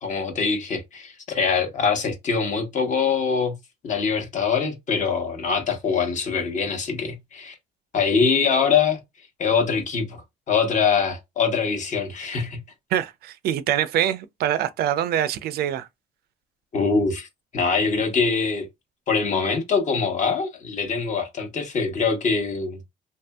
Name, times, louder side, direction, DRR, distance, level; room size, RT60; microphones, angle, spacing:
voice 1, 0.0-3.6 3.8-7.5 7.9-9.0 9.4-12.6 16.7-17.3 17.5-18.7 19.1-22.8, left 5 dB, 45° left, 0.9 m, -23 dB
voice 2, 12.9-15.9, right 11 dB, 70° right, 0.4 m, -24 dB
2.7 x 2.6 x 2.2 m
cardioid pair, 110°, 17 cm